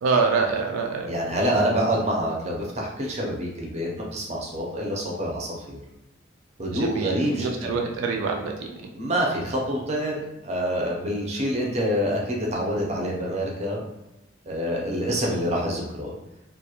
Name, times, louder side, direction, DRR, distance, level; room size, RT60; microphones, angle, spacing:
voice 1, 0.0-1.1 6.7-8.9, right 4 dB, 85° right, 2 dB, 0.3 m, -25 dB
voice 2, 1.1-5.8 6.6-7.7 8.9-13.9 14.5-16.1, equal, 35° right, -2 dB, 0.5 m, -26 dB
2.3 x 2.0 x 2.8 m, 0.94 s
head